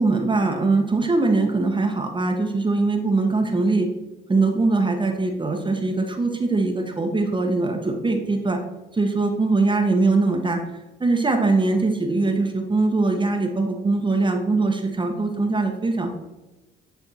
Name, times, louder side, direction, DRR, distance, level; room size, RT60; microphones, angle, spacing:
voice 1, 0.0-3.9 4.3-8.6 8.9-10.6 11.0-16.2, right 3 dB, 25° right, 3 dB, 0.9 m, -22 dB
9.3 x 3.4 x 4.2 m, 1.0 s
cardioid pair, 90°, 20 cm